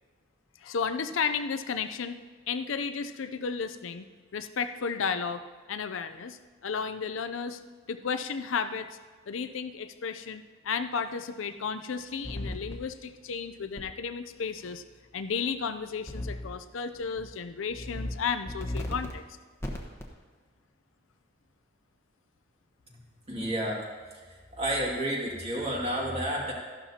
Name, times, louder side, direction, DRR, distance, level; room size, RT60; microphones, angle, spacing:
voice 1, 0.6-2.2 2.5-4.0 4.3-5.4 5.7-7.6 7.9-9.0 9.3-14.8 15.1-19.2, left 6 dB, 75° left, 9 dB, 0.5 m, -33 dB
sound 1, 12.2-12.7 13.8-13.9 16.1-16.5 17.0-17.2 17.7-18.1 18.5-19.1 19.6-20.1, left 1 dB, 15° left, 1.1 m, -35 dB
voice 2, 23.3-23.8 24.1-26.5, right 1 dB, 30° right, -3 dB, 2.2 m, -31 dB
13.0 x 12.0 x 2.8 m, 1.5 s
head